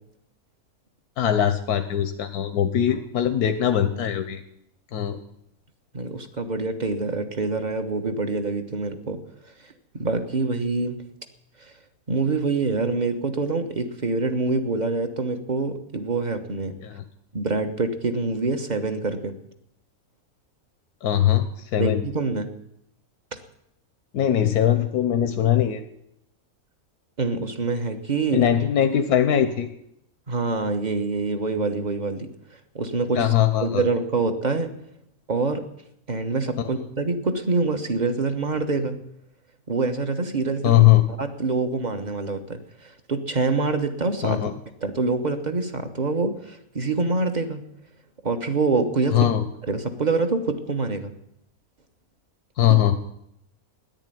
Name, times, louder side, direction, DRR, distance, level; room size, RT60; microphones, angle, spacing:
voice 1, 1.2-4.4 4.9-5.2 16.8-17.0 21.0-22.1 24.1-25.8 28.3-29.7 33.1-33.8 36.6-36.7 40.6-41.0 44.2-44.5 49.1-49.4 52.6-53.0, left 11 dB, 90° left, 9 dB, 1.4 m, -21 dB
voice 2, 5.9-9.2 9.9-11.0 12.1-16.8 17.3-19.4 21.8-22.5 27.2-28.5 30.3-32.3 32.7-33.3 33.6-34.7 35.3-35.7 36.1-39.0 39.7-40.8 41.2-44.5 44.8-47.6 48.2-49.3 49.7-51.1 52.7-52.8, right 3 dB, 30° right, 7 dB, 1.3 m, -25 dB
13.5 x 11.0 x 9.2 m, 0.76 s
omnidirectional pair, 1.6 m